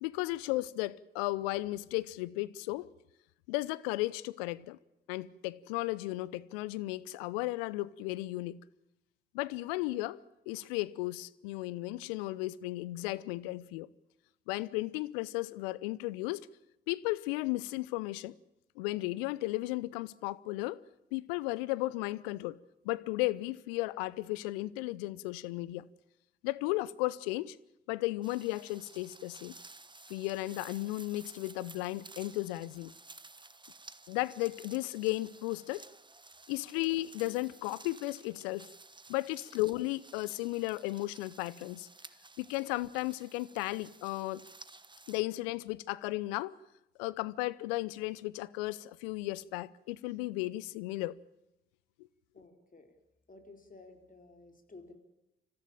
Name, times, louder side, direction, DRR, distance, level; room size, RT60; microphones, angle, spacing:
voice 1, 0.0-2.9 3.5-4.8 5.1-8.6 9.3-10.2 10.5-13.9 14.5-16.5 16.9-18.3 18.8-20.8 21.1-22.6 22.8-25.9 26.4-27.6 27.9-29.5 30.1-32.9 34.1-35.8 36.5-38.7 39.1-41.9 42.4-44.4 45.1-46.6 47.0-51.1, left 19 dB, 75° left, 0.7 m, -35 dB
sound 1, 28.2-45.2, right 3 dB, 15° right, 1.3 m, -54 dB
voice 2, 52.3-52.9 53.3-54.9, left 3 dB, 25° left, 4.4 m, -54 dB
25.5 x 15.0 x 8.8 m
figure-of-eight pair, 40°, 30 cm